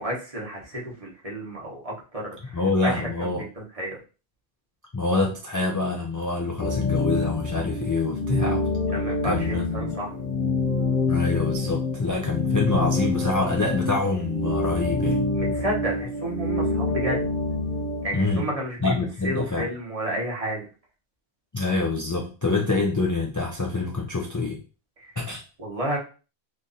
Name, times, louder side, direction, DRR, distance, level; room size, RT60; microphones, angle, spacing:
voice 1, 0.0-3.3 3.6-4.0 8.9-10.1 15.3-17.2 18.0-20.6 25.0-25.1 25.6-26.0, right 1 dB, 35° right, -3 dB, 1.2 m, -31 dB
voice 2, 2.5-3.5 4.9-8.7 9.2-10.0 11.1-15.2 18.1-18.5 18.8-19.7 21.5-24.6 25.2-25.4, left 3 dB, 30° left, 0 dB, 0.3 m, -26 dB
sound 1, 6.6-18.4, left 2 dB, 60° left, 0.7 m, -27 dB
3.1 x 2.5 x 3.9 m, 0.33 s
omnidirectional pair, 1.1 m